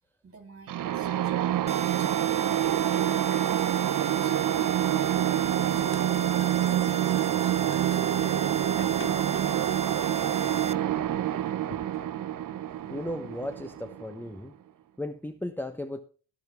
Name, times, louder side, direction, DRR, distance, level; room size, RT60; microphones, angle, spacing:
voice 1, 0.2-2.8 3.3-4.7 9.3-11.6, right 4 dB, 40° right, 5 dB, 3.4 m, -51 dB
sound 1, 0.7-14.3, right 12 dB, 60° right, 0.8 m, -27 dB
sound 2, 1.7-10.7, right 5 dB, 20° right, 0.5 m, -36 dB
sound 3, 5.7-13.9, left 4 dB, 35° left, 1.9 m, -51 dB
voice 2, 12.9-14.5 15.0-16.0, left 1 dB, 5° left, 6 dB, 1.0 m, -35 dB
18.0 x 6.2 x 3.5 m, 0.37 s
supercardioid pair, 65°, 36 cm